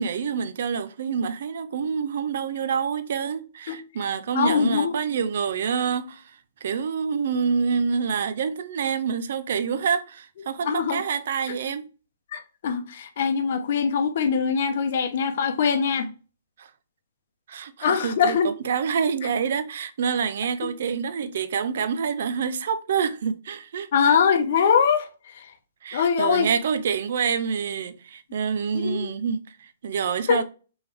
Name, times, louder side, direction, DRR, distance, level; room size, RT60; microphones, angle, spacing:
voice 1, 0.0-11.9 16.6-16.7 17.5-23.9 25.8-30.4, right 6 dB, 65° right, 0.5 m, -27 dB
voice 2, 4.3-4.9 10.6-11.0 12.3-16.1 17.8-18.5 20.6-20.7 23.9-25.5 25.9-26.5 28.7-29.0 30.3-30.4, left 6 dB, 60° left, 0.7 m, -22 dB
3.5 x 3.4 x 3.1 m
hypercardioid pair, 135°, 0 cm